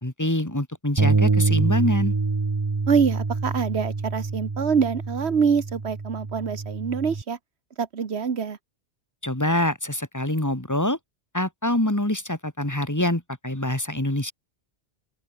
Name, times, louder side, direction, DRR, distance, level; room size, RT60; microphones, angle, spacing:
voice 1, 0.0-2.1 9.2-11.0 11.3-14.3, left 1 dB, 15° left, 2.5 m, -25 dB
Bass guitar, 1.0-7.2, right 3 dB, 25° right, 0.8 m, -25 dB
voice 2, 2.9-7.4 7.8-8.6, right 6 dB, 70° right, 1.7 m, -25 dB
open air
omnidirectional pair, 1.1 m